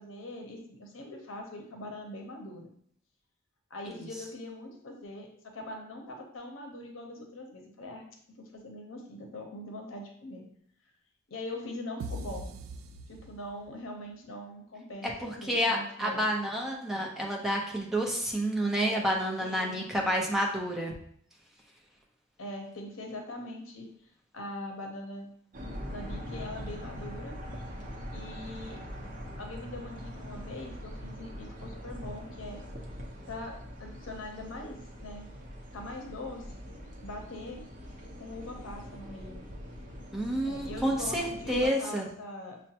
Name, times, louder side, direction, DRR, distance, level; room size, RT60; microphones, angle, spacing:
voice 1, 0.0-2.7 3.7-8.0 8.4-10.5 11.3-12.5 13.1-16.2 19.4-19.9 22.4-23.9 24.3-25.3 25.9-27.4 28.1-28.8 29.4-32.6 33.3-35.3 35.7-36.4 37.0-37.6 38.2-39.4 40.4-42.6, left 1 dB, 80° left, 2 dB, 0.7 m, -42 dB
sound 1, 12.0-13.8, right 2 dB, 85° right, 0.3 m, -40 dB
voice 2, 15.2-20.9 40.1-42.1, equal, ahead, -2 dB, 0.6 m, -29 dB
sound 2, 25.5-41.7, equal, 40° right, 0.7 m, -42 dB
6.3 x 2.2 x 2.8 m, 0.66 s
head